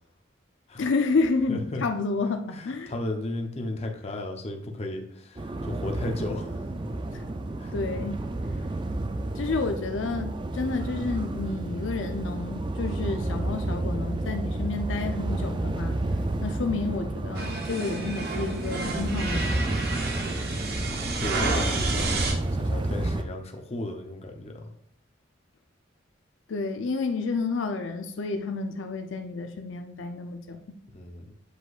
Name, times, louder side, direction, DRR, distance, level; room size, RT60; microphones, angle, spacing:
voice 1, 0.8-2.9 7.1-7.2 7.7-8.2 9.3-16.0 16.4-19.5 26.5-30.8, left 3 dB, 75° left, 6 dB, 0.5 m, -30 dB
voice 2, 1.5-1.8 2.5-6.6 7.6-7.7 20.1-20.6 21.2-22.1 22.5-24.7 30.9-31.3, left 1 dB, 35° left, 3 dB, 0.7 m, -35 dB
sound 1, 5.4-23.2, right 2 dB, 25° right, 0.3 m, -31 dB
sound 2, 17.4-22.3, right 2 dB, 55° right, 0.9 m, -30 dB
8.0 x 5.1 x 2.4 m, 0.73 s
head